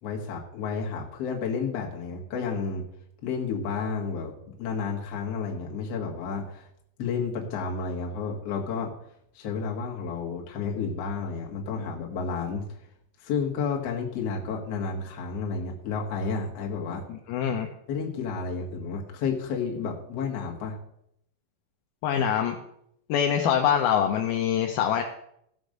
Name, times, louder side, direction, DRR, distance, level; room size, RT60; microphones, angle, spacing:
voice 1, 0.0-2.9 3.2-6.7 7.0-8.9 9.3-12.6 13.2-17.0 17.9-20.8, left 5 dB, 50° left, 0 dB, 2.1 m, -31 dB
voice 2, 17.1-17.7 22.0-22.6 23.1-25.0, left 9 dB, 80° left, 3 dB, 2.4 m, -24 dB
15.0 x 5.2 x 6.5 m, 0.75 s
omnidirectional pair, 4.9 m